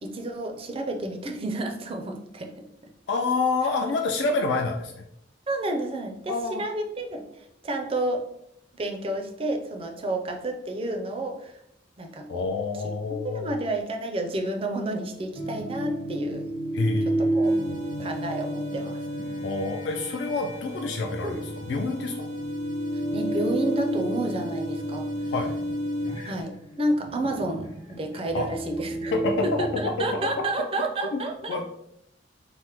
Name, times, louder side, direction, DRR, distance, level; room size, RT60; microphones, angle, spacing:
voice 1, 0.0-2.5 5.5-8.2 8.7-11.6 12.0-12.4 13.2-16.5 17.1-17.5 18.0-19.0 21.2-21.4 23.1-25.1 26.2-27.7 28.0-29.1 29.4-31.6, right 1 dB, 30° right, 3 dB, 0.4 m, -30 dB
voice 2, 3.1-5.0 6.3-6.6 12.3-13.6 16.7-18.2 19.4-22.3 25.3-25.5 28.3-28.5 29.1-30.3 30.6-30.7 31.1-31.2 31.5-31.7, left 3 dB, 70° left, 2 dB, 0.3 m, -28 dB
sound 1, 15.3-30.5, right 1 dB, 25° left, 0.6 m, -31 dB
sound 2, 17.4-26.4, equal, 85° right, 0.5 m, -45 dB
3.2 x 2.0 x 2.9 m, 0.77 s
head